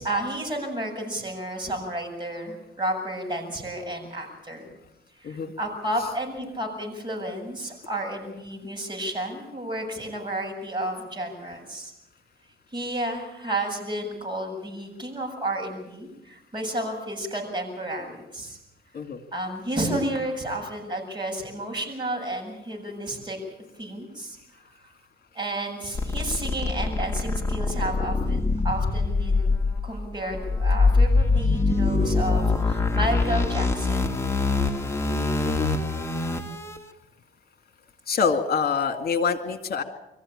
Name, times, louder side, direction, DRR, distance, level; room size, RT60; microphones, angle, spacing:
voice 1, 0.0-4.7 5.2-11.9 12.7-18.6 19.3-23.4 23.8-24.4 24.8-24.9 25.3-29.6 29.8-34.0, right 1 dB, 25° right, 1 dB, 7.8 m, -31 dB
sound 1, 25.9-36.8, left 3 dB, 15° left, 2.4 m, -24 dB
voice 2, 38.1-39.8, left 5 dB, 50° left, 8 dB, 2.2 m, -25 dB
24.0 x 15.0 x 8.7 m, 0.91 s
cardioid pair, 90°, 20 cm